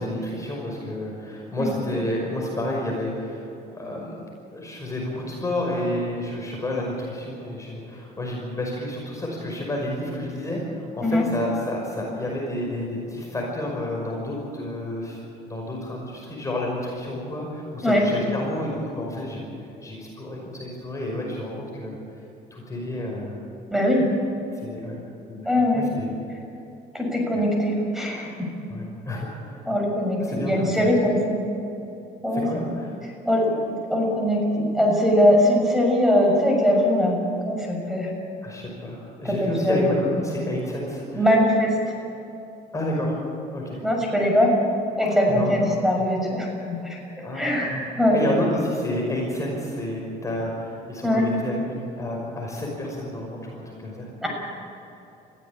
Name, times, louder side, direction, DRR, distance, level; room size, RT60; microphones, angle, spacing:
voice 1, 0.0-4.2 4.5-19.5 19.8-22.0 22.5-23.4 24.5-25.0 25.3-25.5 25.7-26.1 27.3-27.4 28.7-29.6 30.2-30.9 32.3-32.9 38.4-41.3 42.7-43.2 43.5-43.8 45.3-45.5 47.2-47.8 48.1-54.1, left 1 dB, 20° left, -2 dB, 5.6 m, -30 dB
voice 2, 23.7-24.1 25.4-25.8 26.9-28.5 29.7-31.4 32.2-32.6 33.2-33.5 33.9-37.2 37.4-38.1 39.2-39.9 41.1-41.7 43.8-44.5 45.0-47.0 47.3-48.2 51.0-51.3 54.2-54.3, left 1 dB, ahead, 0 dB, 6.6 m, -21 dB
22.0 x 16.0 x 8.7 m, 2.9 s
cardioid pair, 110°, 17 cm